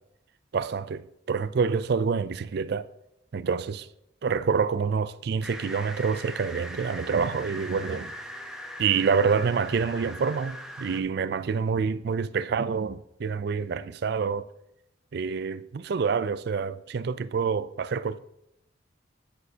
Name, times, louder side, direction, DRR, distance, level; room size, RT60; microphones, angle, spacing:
voice 1, 0.5-2.9 3.3-3.9 4.2-8.1 8.8-14.5 15.1-18.2, right 5 dB, 55° right, 0.4 m, -27 dB
sound 1, 5.4-11.0, equal, 5° right, 0.8 m, -40 dB
9.7 x 9.4 x 2.8 m
head